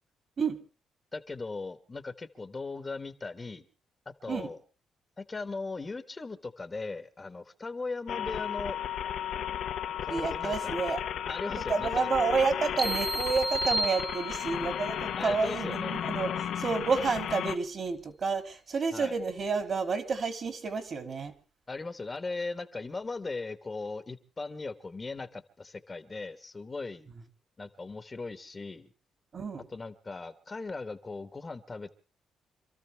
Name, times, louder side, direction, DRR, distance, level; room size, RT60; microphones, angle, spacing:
voice 1, 1.1-3.7 4.0-4.6 5.2-8.8 10.0-10.7 11.3-12.1 15.2-15.9 18.9-19.1 21.7-27.1 27.6-28.9 29.7-31.9, left 3 dB, 30° left, 9 dB, 1.3 m, -38 dB
sound 1, 8.1-17.6, left 9 dB, 75° left, 1.1 m, -34 dB
voice 2, 10.1-11.0 11.6-21.3 29.3-29.7, right 4 dB, 50° right, 6 dB, 2.9 m, -30 dB
sound 2, 12.8-14.7, right 1 dB, 15° right, 0.8 m, -32 dB
27.5 x 13.5 x 3.5 m, 0.35 s
cardioid pair, 85°, 0 cm